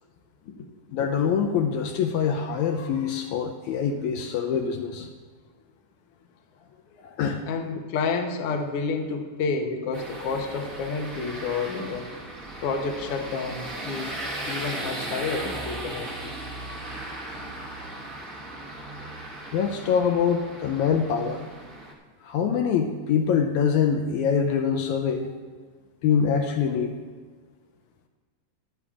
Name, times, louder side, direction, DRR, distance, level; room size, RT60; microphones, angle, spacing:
voice 1, 0.9-5.1 7.1-7.4 17.4-17.5 19.5-21.5 22.2-25.3 26.0-27.0, left 7 dB, 80° left, 4 dB, 1.9 m, -24 dB
voice 2, 7.5-12.1 12.6-14.1 14.5-16.5, left 4 dB, 65° left, 4 dB, 1.6 m, -30 dB
sound 1, 9.9-21.9, right 2 dB, 40° right, 1.2 m, -37 dB
23.5 x 8.5 x 2.4 m, 1.5 s
omnidirectional pair, 3.5 m